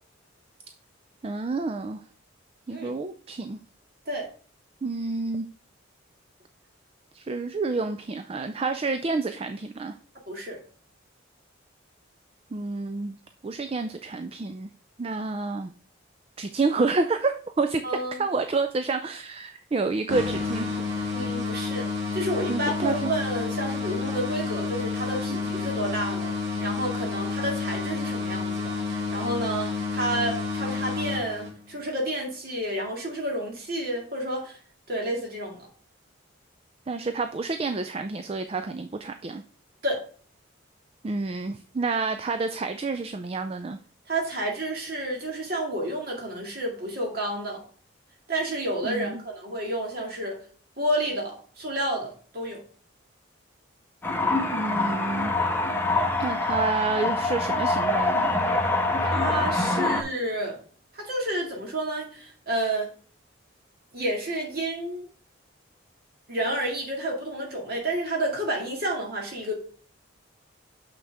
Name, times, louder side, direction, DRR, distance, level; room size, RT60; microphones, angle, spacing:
voice 1, 1.2-2.0 2.7-3.6 4.8-5.5 7.1-9.9 12.5-13.2 13.4-14.7 15.0-15.7 16.4-21.2 22.5-23.1 25.3-25.7 36.9-39.4 41.0-43.8 48.8-49.2 54.5-55.4 56.2-58.4, right 3 dB, 30° right, 9 dB, 0.3 m, -29 dB
voice 2, 10.3-10.6 17.8-18.2 21.1-26.3 26.6-34.6 34.9-35.7 39.8-40.0 44.1-47.6 48.3-50.4 50.8-52.6 59.0-60.6 60.9-62.9 63.9-65.1 66.3-69.5, right 1 dB, 50° right, 0 dB, 2.2 m, -30 dB
sound 1, 20.1-31.8, left 4 dB, 85° right, 3.4 m, -30 dB
sound 2, 54.0-60.0, left 2 dB, 10° left, 0.8 m, -25 dB
6.6 x 6.0 x 3.5 m, 0.43 s
head